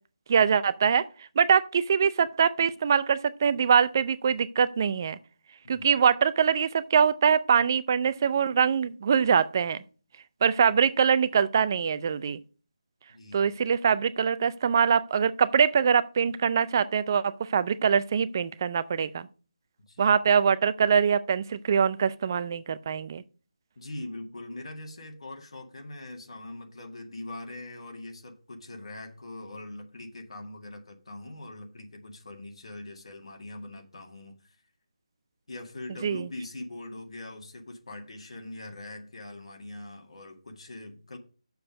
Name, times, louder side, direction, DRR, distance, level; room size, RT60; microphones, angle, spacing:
voice 1, 0.3-1.0 1.4-5.2 5.7-9.8 10.4-12.4 13.3-19.3 20.0-23.2 36.0-36.3, right 7 dB, 30° right, 0.5 m, -23 dB
voice 2, 5.6-5.9 13.1-13.5 19.9-20.2 23.8-34.6 35.5-41.2, left 2 dB, 60° left, 1.9 m, -42 dB
6.9 x 6.7 x 5.1 m
figure-of-eight pair, 165°, 4 cm